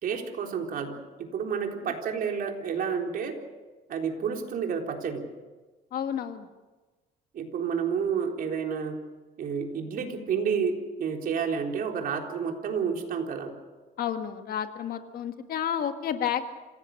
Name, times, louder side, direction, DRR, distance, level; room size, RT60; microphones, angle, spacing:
voice 1, 0.0-3.4 3.9-5.2 7.3-9.0 9.4-13.5, right 6 dB, 60° right, 2 dB, 3.9 m, -30 dB
voice 2, 5.9-6.5 14.0-16.5, left 9 dB, 60° left, 7 dB, 1.9 m, -31 dB
27.0 x 17.0 x 6.7 m, 1.2 s
cardioid pair, 110°, 17 cm